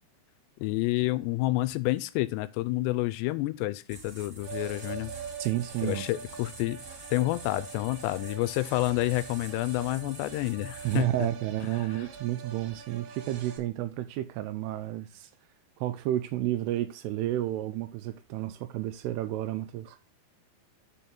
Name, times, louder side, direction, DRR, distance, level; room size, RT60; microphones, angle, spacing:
voice 1, 0.6-5.1 5.8-6.8 7.1-11.1, left 18 dB, 85° left, 2.6 m, -29 dB
sound 1, 3.9-11.0, right 3 dB, 30° right, 1.5 m, -47 dB
sound 2, 4.4-13.6, right 6 dB, 65° right, 2.4 m, -44 dB
voice 2, 5.4-6.1 10.8-15.3 15.8-20.0, right 14 dB, 85° right, 2.5 m, -31 dB
5.4 x 5.4 x 5.9 m
omnidirectional pair, 4.9 m